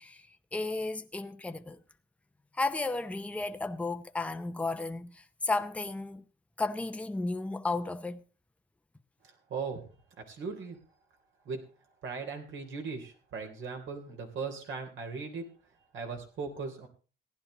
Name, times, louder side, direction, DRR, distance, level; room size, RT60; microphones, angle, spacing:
voice 1, 0.0-1.8 2.5-6.2 6.6-8.2, left 3 dB, 5° left, 0.7 m, -33 dB
voice 2, 9.2-9.8 10.3-10.8 11.4-11.6 12.0-15.5 15.9-16.9, right 5 dB, 75° right, 3.4 m, -38 dB
15.5 x 10.5 x 3.9 m
cardioid pair, 90°, 20 cm